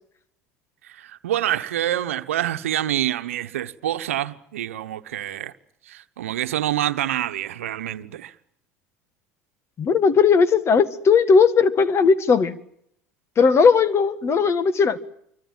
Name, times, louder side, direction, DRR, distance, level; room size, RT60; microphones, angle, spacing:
voice 1, 1.0-5.5 5.9-8.3, right 12 dB, 85° right, 1.1 m, -26 dB
voice 2, 9.8-12.6 13.4-15.0, left 5 dB, 40° left, 1.9 m, -17 dB
27.0 x 24.5 x 7.4 m
hypercardioid pair, 75°, 7 cm